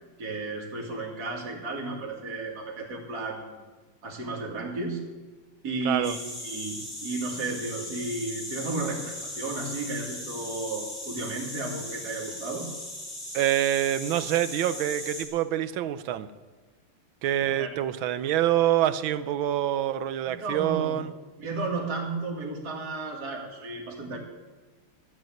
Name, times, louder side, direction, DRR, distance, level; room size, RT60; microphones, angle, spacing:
voice 1, 0.2-3.6 4.0-5.0 5.6-12.7 17.2-17.7 20.3-21.1 21.4-24.2, right 3 dB, 45° right, -1 dB, 2.7 m, -33 dB
voice 2, 5.8-6.2 13.3-16.3 17.2-21.1, right 12 dB, 70° right, 14 dB, 1.4 m, -26 dB
sound 1, 6.0-15.2, left 1 dB, 20° left, 2.8 m, -38 dB
13.5 x 8.6 x 9.1 m, 1.3 s
omnidirectional pair, 2.4 m